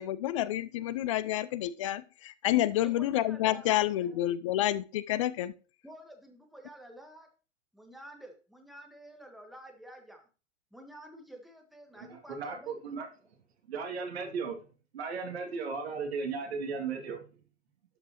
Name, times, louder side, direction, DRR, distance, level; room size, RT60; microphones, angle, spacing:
voice 1, 0.0-5.5, left 13 dB, 30° left, 0.4 m, -29 dB
voice 2, 2.8-4.3 5.8-7.3 7.7-10.2 10.7-12.8, right 1 dB, ahead, 1.5 m, -50 dB
voice 3, 12.0-13.1 13.7-14.7 14.9-17.2, right 5 dB, 55° right, 2.4 m, -36 dB
12.0 x 5.3 x 3.0 m
figure-of-eight pair, 100°, 37 cm